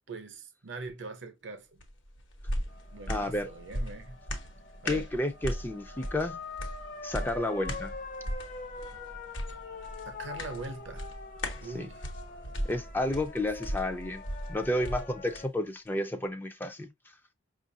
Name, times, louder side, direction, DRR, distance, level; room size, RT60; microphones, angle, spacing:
voice 1, 0.1-1.8 2.9-4.2 4.8-5.1 10.1-11.0 11.6-12.1, right 3 dB, 65° right, 0.7 m, -42 dB
sound 1, 1.8-15.5 15.9-16.0, equal, 65° left, 1.0 m, -38 dB
sound 2, 2.7-15.5, left 4 dB, 45° left, 0.7 m, -45 dB
voice 2, 3.1-3.5 4.8-6.4 7.0-7.9 11.7-11.9 12.7-14.2 14.5-16.9, left 1 dB, 10° left, 0.4 m, -31 dB
5.2 x 2.4 x 2.6 m
head